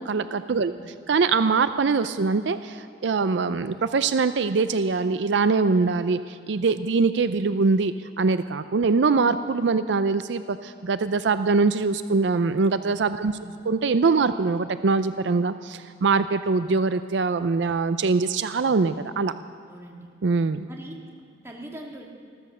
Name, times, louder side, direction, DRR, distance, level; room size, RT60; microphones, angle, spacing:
voice 1, 0.0-0.7 1.1-13.4 13.7-19.3 20.2-20.7, right 4 dB, 75° right, 12 dB, 0.5 m, -23 dB
voice 2, 0.5-0.9 13.2-13.6 19.7-20.1 20.7-21.0 21.4-22.1, right 1 dB, 15° right, 0 dB, 1.9 m, -42 dB
15.5 x 13.5 x 6.6 m, 2.3 s
head